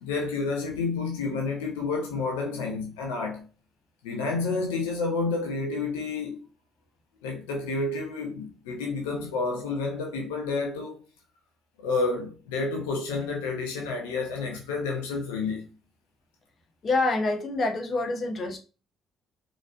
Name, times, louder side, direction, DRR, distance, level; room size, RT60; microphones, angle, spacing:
voice 1, 0.0-3.4 4.0-6.4 7.2-11.0 11.8-15.6, left 3 dB, 70° left, 0.8 m, -30 dB
voice 2, 16.8-18.6, left 2 dB, 40° left, 1.0 m, -26 dB
4.1 x 3.1 x 2.5 m
figure-of-eight pair, 45°, 0 cm